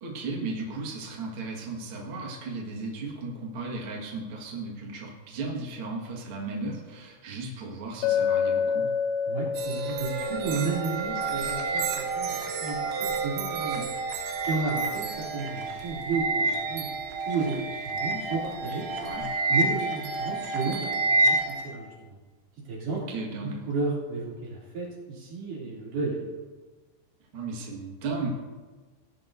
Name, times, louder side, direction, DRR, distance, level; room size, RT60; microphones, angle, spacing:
voice 1, 0.0-8.9 13.7-13.8 19.0-19.3 22.9-23.6 27.3-28.3, right 3 dB, 90° right, -2 dB, 1.1 m, -35 dB
Chink clink, 8.0-12.0, left 7 dB, 80° left, 2.8 m, -29 dB
voice 2, 9.3-13.9 14.5-16.9 17.3-19.1 19.5-22.2 22.7-23.0 23.4-26.3, right 4 dB, 50° right, -5 dB, 4.0 m, -32 dB
sound 1, 9.6-21.7, right 3 dB, 75° right, 3.1 m, -29 dB
18.5 x 10.5 x 2.6 m, 1.3 s
omnidirectional pair, 5.4 m